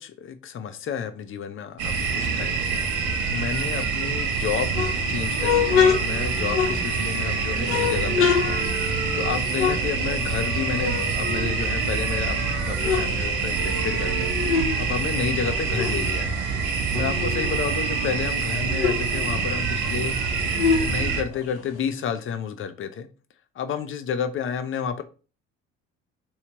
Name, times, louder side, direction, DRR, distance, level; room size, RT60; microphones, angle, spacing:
voice 1, 0.0-2.8 3.3-8.6 9.1-14.3 14.8-16.4 16.9-20.1 20.8-23.1 23.6-25.0, left 7 dB, 40° left, 0.5 m, -31 dB
sound 1, 1.8-21.2, right 5 dB, 70° right, 0.8 m, -26 dB
sound 2, 4.5-7.2 7.6-10.5 10.8-12.1 12.5-14.8 15.1-17.6 18.0-18.1 18.3-21.8, left 6 dB, 90° left, 0.7 m, -26 dB
Bowed string instrument, 5.0-19.1, equal, 70° left, 1.4 m, -39 dB
3.2 x 3.0 x 2.8 m
hypercardioid pair, 60°, 32 cm